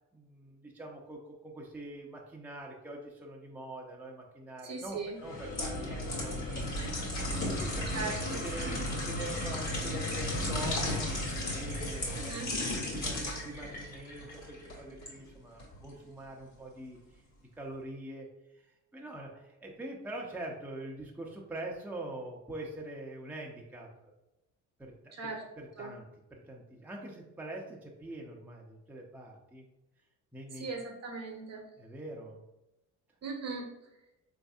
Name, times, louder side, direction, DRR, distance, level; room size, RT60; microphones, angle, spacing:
voice 1, 0.1-6.8 7.4-11.1 11.6-12.4 12.9-17.2 17.5-18.3 18.5-24.1 24.8-25.1 25.6-26.0 26.3-29.6 30.3-30.7 31.8-32.4, right 2 dB, 5° right, -1 dB, 0.6 m, -44 dB
voice 2, 4.6-5.2 7.9-8.4 8.7-8.8 12.2-12.5 25.1-25.4 25.8-25.9 30.5-31.6 33.2-33.7, right 4 dB, 45° right, 2 dB, 0.9 m, -39 dB
sound 1, 5.2-15.1 15.6-15.8, left 1 dB, 50° left, 1.4 m, -34 dB
3.9 x 2.6 x 2.3 m, 0.95 s
supercardioid pair, 70°, 36 cm